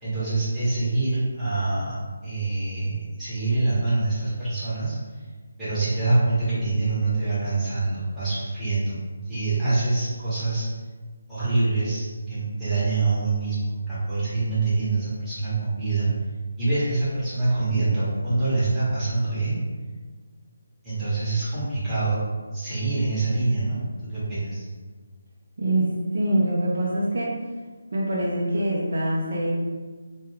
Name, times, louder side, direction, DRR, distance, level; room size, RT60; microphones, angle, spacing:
voice 1, 0.0-1.9 2.2-5.0 5.6-10.7 11.3-16.1 16.6-19.6 20.8-22.2 22.5-23.8 24.0-24.6, right 3 dB, 5° right, -15 dB, 1.0 m, -25 dB
voice 2, 25.6-27.3 27.9-29.5, right 1 dB, 60° right, -5 dB, 0.6 m, -24 dB
2.3 x 2.2 x 3.2 m, 1.4 s
figure-of-eight pair, 160°, 0 cm